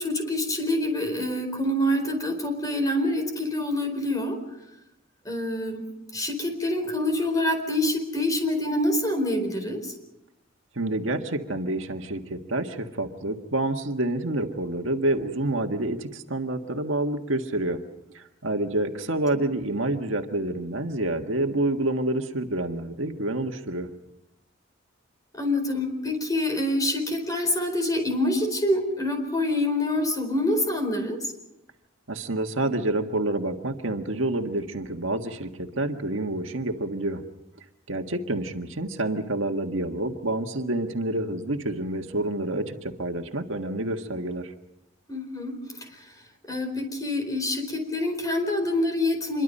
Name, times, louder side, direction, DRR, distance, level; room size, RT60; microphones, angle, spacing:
voice 1, 0.0-4.4 5.2-5.8 6.1-9.9 25.3-31.3 45.1-45.6 46.5-49.4, left 1 dB, 20° left, 5 dB, 4.4 m, -26 dB
voice 2, 10.7-17.8 18.1-23.9 32.1-37.2 37.9-44.5, right 2 dB, 70° right, 4 dB, 1.7 m, -28 dB
26.5 x 23.0 x 5.5 m, 0.90 s
head